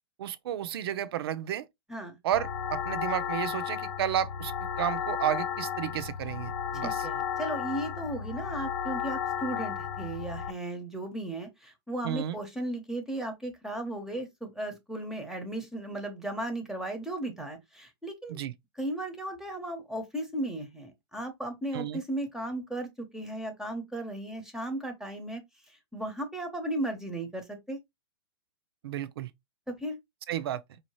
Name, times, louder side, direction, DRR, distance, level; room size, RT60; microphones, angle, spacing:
voice 1, 0.2-1.7 2.2-7.1 12.0-12.4 18.3-18.5 21.7-22.0 28.8-29.3 30.3-30.8, right 10 dB, 65° right, 0.7 m, -32 dB
sound 1, 2.3-10.5, left 8 dB, 85° left, 0.8 m, -34 dB
voice 2, 6.8-18.4 18.8-25.4 25.7-27.8 29.7-30.0, right 1 dB, 5° right, 0.9 m, -36 dB
5.1 x 2.8 x 3.1 m
hypercardioid pair, 150°, 14 cm